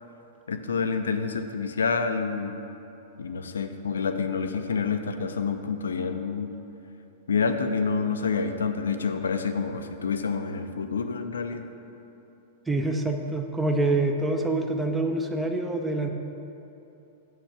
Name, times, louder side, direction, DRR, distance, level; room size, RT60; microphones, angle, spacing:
voice 1, 0.5-2.6 3.2-6.5 7.3-11.6, left 5 dB, 65° left, 8 dB, 0.4 m, -28 dB
voice 2, 12.7-16.1, right 2 dB, 10° right, 3 dB, 0.6 m, -26 dB
6.7 x 4.6 x 6.0 m, 2.9 s
figure-of-eight pair, 100°, 0 cm